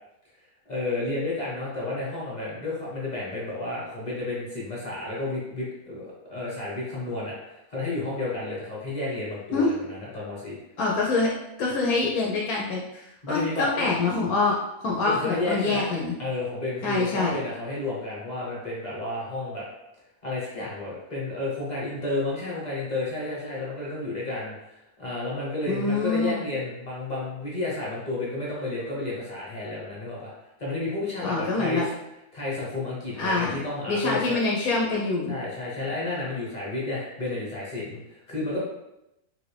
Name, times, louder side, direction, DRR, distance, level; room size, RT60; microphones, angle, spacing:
voice 1, 0.7-10.6 13.2-13.9 15.0-15.9 16.2-19.6 20.2-30.3 30.6-31.8 32.3-34.4 35.3-38.6, left 2 dB, 35° left, -6 dB, 0.9 m, -31 dB
voice 2, 10.8-11.3 11.6-16.1 16.8-17.4 25.7-26.4 31.2-31.9 33.2-33.6 33.9-35.3, left 3 dB, 75° left, -2 dB, 1.0 m, -25 dB
3.3 x 2.5 x 3.2 m, 0.87 s
omnidirectional pair, 1.6 m